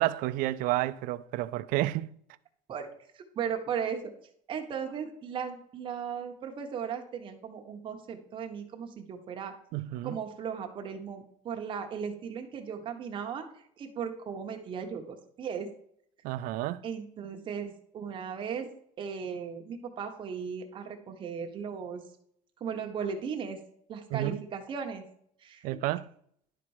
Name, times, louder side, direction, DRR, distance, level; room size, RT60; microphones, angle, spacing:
voice 1, 0.0-2.1 9.7-10.2 16.2-16.8 24.1-24.4 25.6-26.1, right 16 dB, 65° right, 0.5 m, -30 dB
voice 2, 3.1-4.1 4.5-9.5 10.0-13.5 13.8-15.7 16.8-18.7 19.0-22.0 22.6-23.6 23.9-25.1 25.4-25.7, right 7 dB, 35° right, 1.2 m, -36 dB
11.5 x 4.2 x 4.8 m
cardioid pair, 175°, 15 cm